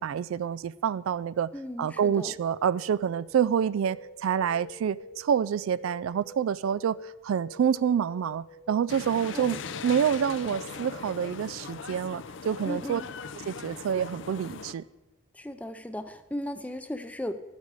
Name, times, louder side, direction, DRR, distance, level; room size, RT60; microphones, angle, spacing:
voice 1, 0.0-1.5 1.8-9.6 9.8-13.0 13.5-14.8, right 8 dB, 80° right, 18 dB, 0.3 m, -27 dB
voice 2, 1.5-2.3 9.3-9.6 12.6-13.0 15.3-17.3, left 1 dB, 5° left, 10 dB, 0.5 m, -36 dB
sound 1, 1.9-11.5, left 1 dB, 85° left, 1.5 m, -48 dB
sound 2, 8.9-14.7, left 5 dB, 65° left, 0.5 m, -40 dB
13.5 x 8.3 x 4.9 m, 1.0 s
head